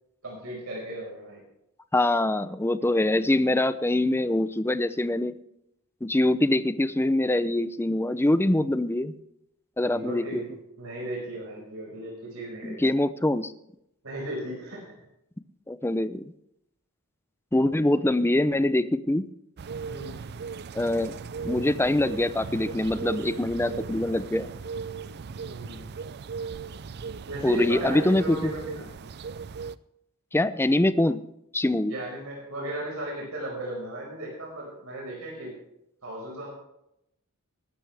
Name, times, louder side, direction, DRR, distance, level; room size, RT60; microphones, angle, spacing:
voice 1, 0.2-1.4 9.8-12.9 14.0-14.9 19.8-20.2 25.5-25.9 27.3-28.9 31.9-35.5 36.0-36.5, right 1 dB, 70° right, -2 dB, 5.2 m, -36 dB
voice 2, 1.9-5.3 6.0-9.1 9.8-10.5 12.6-13.5 15.7-16.2 17.5-19.3 20.7-21.1 21.4-24.5 27.4-28.5 30.3-31.2 31.5-31.9, left 1 dB, 10° left, 13 dB, 0.5 m, -24 dB
sound 1, 19.6-29.8, right 5 dB, 50° right, 0.4 m, -37 dB
20.0 x 12.0 x 3.4 m, 0.80 s
head